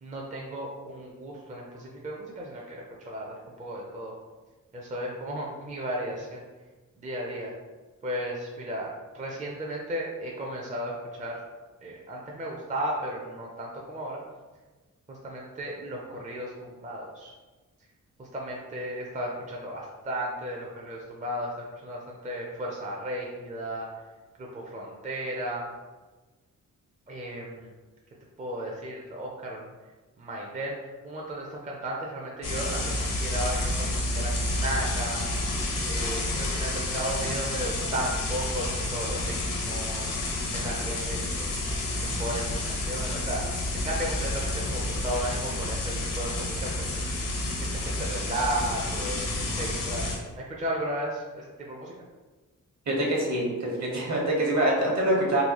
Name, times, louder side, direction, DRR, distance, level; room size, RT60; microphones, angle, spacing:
voice 1, 0.0-4.1 4.7-6.4 7.0-7.5 8.0-11.4 11.8-14.2 15.1-17.3 18.2-23.9 24.4-25.7 27.1-27.7 28.4-29.7 30.2-35.2 35.8-40.1 40.5-41.6 42.0-43.6 43.8-47.1 47.5-51.9, right 1 dB, 25° right, -2 dB, 0.5 m, -35 dB
sound 1, 32.4-50.2, left 2 dB, 80° left, 0.8 m, -30 dB
voice 2, 52.9-55.4, right 1 dB, 60° right, -2 dB, 1.1 m, -25 dB
3.9 x 2.3 x 2.9 m, 1.3 s
wide cardioid pair, 115°, 32 cm